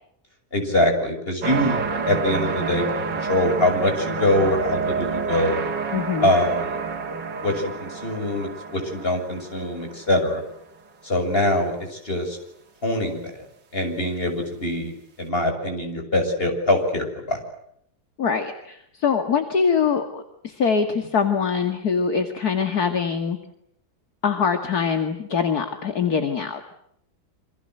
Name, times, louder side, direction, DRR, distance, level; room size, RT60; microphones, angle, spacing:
voice 1, 0.5-1.8 2.1-2.9 3.1-5.6 6.2-6.8 7.4-10.4 11.0-12.4 12.8-13.5 13.7-14.9 15.2-17.4, left 1 dB, 30° left, 5 dB, 7.0 m, -23 dB
sound 1, 1.4-10.5 11.1-11.2, right 5 dB, 80° right, 2.6 m, -29 dB
voice 2, 5.9-6.3 18.2-23.4 24.2-26.7, left 6 dB, 60° left, 6 dB, 2.5 m, -23 dB
28.0 x 26.5 x 7.9 m, 0.73 s
omnidirectional pair, 1.9 m